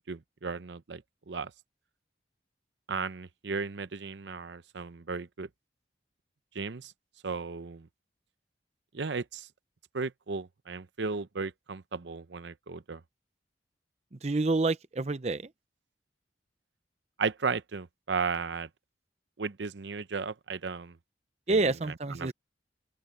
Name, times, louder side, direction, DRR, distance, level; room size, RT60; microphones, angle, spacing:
voice 1, 0.1-1.5 2.9-5.5 6.5-6.9 7.2-7.9 8.9-9.5 9.9-13.0 17.2-18.7 19.4-21.0 21.5-22.3, right 4 dB, 80° right, 0.7 m, -35 dB
voice 2, 14.2-15.4 21.5-22.3, right 3 dB, 35° right, 0.6 m, -28 dB
open air
head